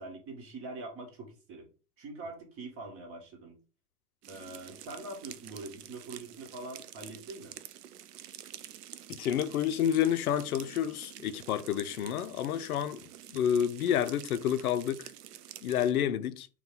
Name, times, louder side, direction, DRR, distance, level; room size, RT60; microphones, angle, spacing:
voice 1, 0.0-1.7 2.0-3.6 4.3-7.5, right 2 dB, 25° right, 1.4 m, -43 dB
sound 1, 4.2-15.9, right 11 dB, 70° right, 0.5 m, -48 dB
voice 2, 9.1-13.0 13.3-15.1 15.6-16.5, left 9 dB, 60° left, 0.5 m, -29 dB
4.1 x 2.3 x 3.6 m
figure-of-eight pair, 95°, 49 cm